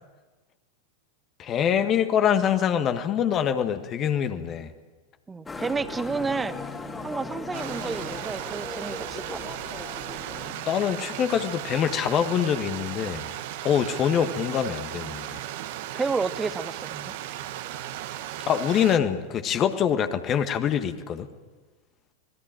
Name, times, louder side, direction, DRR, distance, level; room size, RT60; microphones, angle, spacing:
voice 1, 1.4-4.7 10.5-13.3 13.6-15.4 18.4-21.3, left 8 dB, 30° left, 9 dB, 1.6 m, -25 dB
voice 2, 5.3-6.6 7.0-9.4 15.9-17.1, right 4 dB, 15° right, 14 dB, 1.1 m, -30 dB
Motorcycle, 5.5-10.5, left 3 dB, 15° left, 2.5 m, -37 dB
Stream, 7.5-19.0, right 13 dB, 50° right, 1.5 m, -36 dB
26.0 x 20.0 x 9.0 m, 1.3 s
figure-of-eight pair, 90°, 0 cm